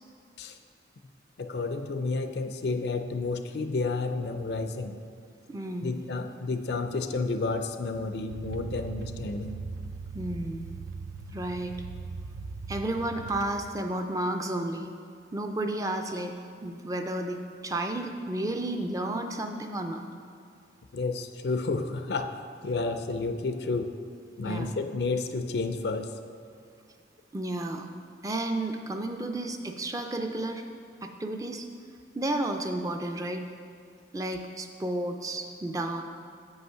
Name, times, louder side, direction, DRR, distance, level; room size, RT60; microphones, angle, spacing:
voice 1, 1.4-5.0 5.8-9.6 20.9-22.3 22.6-23.9 24.4-26.1, left 3 dB, 60° left, 7 dB, 0.5 m, -31 dB
voice 2, 5.5-6.0 10.1-10.7 11.3-11.7 12.7-14.9 15.3-20.0 24.4-24.7 27.3-27.9 28.2-30.6 31.0-31.7 32.1-33.4 34.1-36.0, right 1 dB, 20° right, 5 dB, 0.4 m, -32 dB
sound 1, 8.3-13.9, right 4 dB, 75° right, 0.5 m, -40 dB
8.1 x 5.5 x 5.6 m, 2.3 s
head